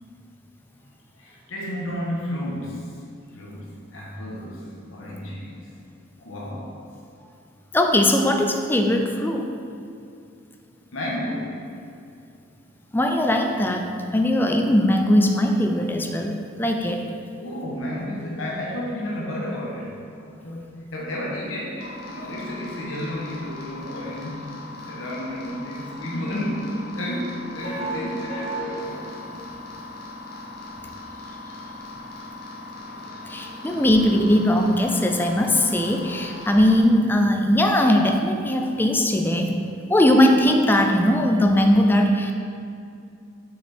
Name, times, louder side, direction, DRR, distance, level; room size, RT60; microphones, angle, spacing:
voice 1, 1.2-2.8 3.3-5.6 6.2-6.7 10.9-11.6 17.4-24.4 24.9-28.5 30.3-30.5 32.8-33.8, left 1 dB, 80° left, -4 dB, 1.4 m, -32 dB
voice 2, 7.7-9.5 12.9-17.0 33.2-39.6 39.9-42.3, left 1 dB, 10° left, 3 dB, 0.5 m, -20 dB
sound 1, 21.8-36.8, left 1 dB, 55° left, 1.6 m, -37 dB
6.2 x 6.0 x 4.4 m, 2.4 s
head